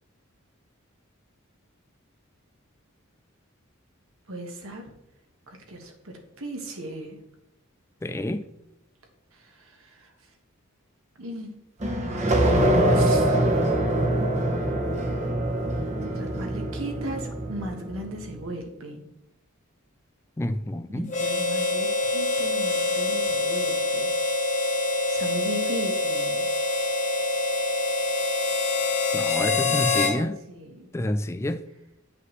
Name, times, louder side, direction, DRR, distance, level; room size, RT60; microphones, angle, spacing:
voice 1, 4.3-4.8 5.5-7.2 9.6-10.1 11.2-11.5 11.8-12.3 12.8-13.6 16.0-19.0 20.9-24.1 25.1-26.5 29.3-30.9, right 1 dB, 70° right, 1.4 m, -37 dB
voice 2, 8.0-8.5 20.4-21.1 29.1-30.4 30.9-31.6, left 1 dB, 15° left, 0.3 m, -28 dB
sound 1, 11.8-18.2, right 1 dB, 35° right, 0.9 m, -24 dB
Harmonica, 21.1-30.2, left 2 dB, 35° left, 1.0 m, -25 dB
9.3 x 5.7 x 3.2 m
head